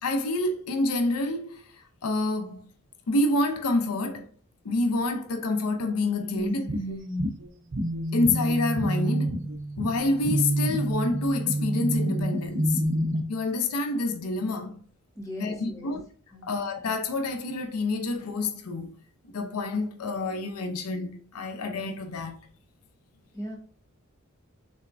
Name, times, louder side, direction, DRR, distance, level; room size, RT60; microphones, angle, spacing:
voice 1, 0.0-1.6 2.0-2.7 3.1-4.3 4.6-6.8 8.1-12.8 13.3-14.8 15.4-16.0 16.4-18.9 19.2-22.4, left 2 dB, 80° left, 0.6 m, -28 dB
sound 1, 6.4-13.2, right 1 dB, 60° right, 0.7 m, -28 dB
voice 2, 15.1-15.9 16.3-16.5 23.3-23.6, equal, 15° left, 1.2 m, -38 dB
6.1 x 3.4 x 2.5 m
head